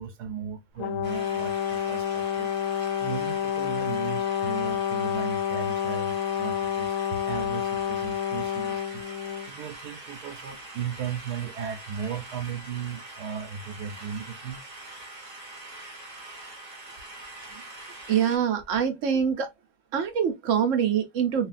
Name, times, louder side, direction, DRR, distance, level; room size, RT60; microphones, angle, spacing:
voice 1, 0.0-2.5 3.0-9.0 9.5-14.7, right 7 dB, 85° right, 1.4 m, -36 dB
Brass instrument, 0.8-9.5, left 10 dB, 65° left, 0.9 m, -29 dB
sound 1, 1.0-18.4, right 2 dB, 30° right, 1.0 m, -43 dB
voice 2, 18.1-19.5 19.9-21.5, right 8 dB, 60° right, 1.1 m, -24 dB
3.2 x 2.4 x 2.5 m
omnidirectional pair, 1.7 m